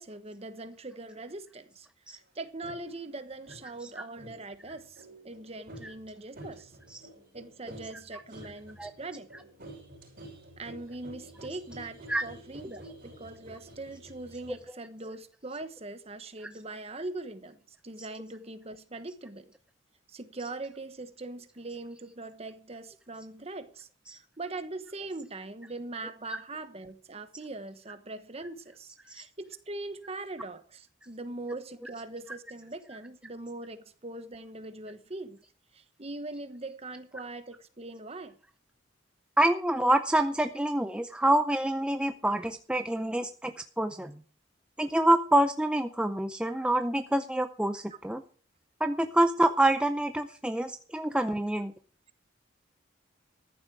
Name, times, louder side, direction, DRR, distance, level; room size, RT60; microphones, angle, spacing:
voice 1, 0.0-6.7 7.3-9.3 10.6-19.5 20.1-35.4 35.7-38.4 47.9-48.0, right 2 dB, 30° right, 1.2 m, -41 dB
sound 1, 2.6-2.9 3.5-3.7 4.2-14.6, right 1 dB, 45° right, 5.6 m, -49 dB
voice 2, 39.4-44.2 44.8-48.2 48.8-51.7, right 1 dB, 5° right, 0.5 m, -26 dB
14.5 x 11.0 x 4.7 m
head